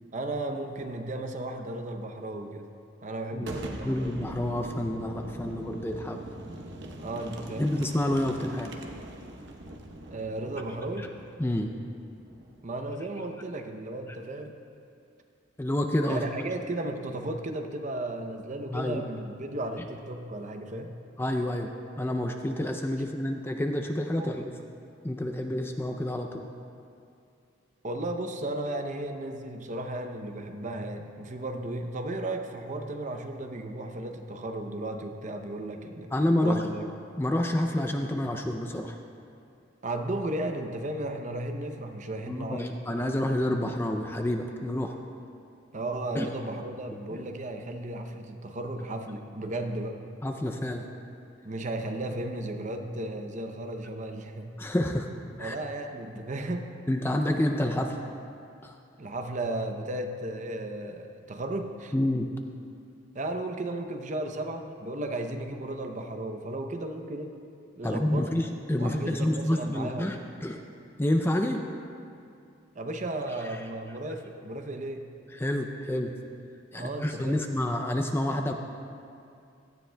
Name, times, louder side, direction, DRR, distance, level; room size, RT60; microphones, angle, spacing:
voice 1, 0.0-2.7 3.0-4.1 7.0-7.7 10.1-11.1 12.6-14.6 16.1-20.9 24.2-24.3 27.8-36.1 36.4-36.8 39.8-42.7 45.7-50.0 51.4-54.5 55.4-56.7 59.0-61.9 63.1-67.3 67.8-68.4 68.8-70.3 72.7-75.1 76.7-77.4, right 1 dB, 40° right, 5 dB, 0.7 m, -35 dB
Boom, 3.4-13.0, right 1 dB, 60° right, 1.0 m, -43 dB
voice 2, 3.8-6.2 7.6-8.7 11.4-11.7 15.6-16.2 18.7-19.0 21.2-21.7 22.0-24.5 25.0-26.5 36.1-36.6 37.2-39.0 42.3-44.9 46.1-46.3 47.1-47.2 50.2-50.8 54.6-55.1 55.4-55.6 56.9-58.0 58.6-58.8 61.9-62.3 67.8-70.6 71.0-71.6 75.3-76.1 76.7-78.5, left 1 dB, 10° left, 4 dB, 0.4 m, -28 dB
17.0 x 13.0 x 2.3 m, 2.5 s
head